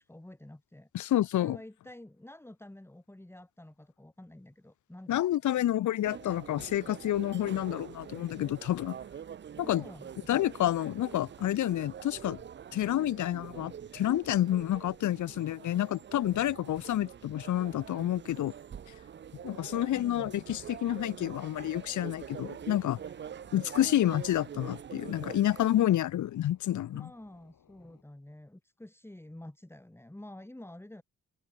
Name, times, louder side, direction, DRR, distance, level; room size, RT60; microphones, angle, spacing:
voice 1, 0.0-5.2 9.6-10.3 19.9-20.4 26.9-31.0, left 1 dB, 5° left, 3.8 m, -49 dB
voice 2, 0.9-1.6 5.1-9.0 9.7-9.8 10.3-12.4 12.7-18.5 19.4-23.0 23.5-27.1, left 12 dB, 60° left, 0.5 m, -29 dB
sound 1, 6.0-25.8, right 8 dB, 35° right, 0.4 m, -45 dB
sound 2, 21.7-28.0, left 8 dB, 75° left, 6.1 m, -65 dB
open air
wide cardioid pair, 170°, 34 cm